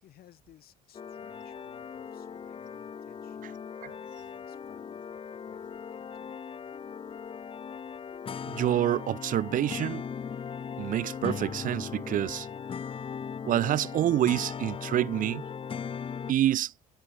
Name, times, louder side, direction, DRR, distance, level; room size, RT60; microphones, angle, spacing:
voice 1, 0.0-6.5 7.4-7.6, left 12 dB, 65° left, 5.1 m, -60 dB
sound 1, 0.9-16.3, left 7 dB, 30° left, 0.9 m, -39 dB
voice 2, 8.5-10.0 10.8-12.5 13.4-15.4 16.3-16.7, right 12 dB, 50° right, 0.5 m, -27 dB
cardioid pair, 110°, 17 cm